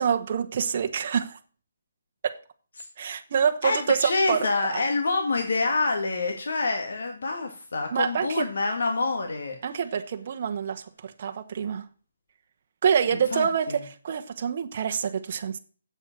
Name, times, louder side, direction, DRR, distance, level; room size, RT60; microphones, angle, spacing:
voice 1, 0.0-1.4 2.2-2.4 3.0-4.8 7.9-8.5 9.6-11.9 12.8-15.6, right 7 dB, 40° right, 1.0 m, -26 dB
voice 2, 3.6-9.6 13.3-13.8, left 3 dB, 75° left, 2.0 m, -27 dB
7.9 x 7.9 x 6.0 m
hypercardioid pair, 170°, 0 cm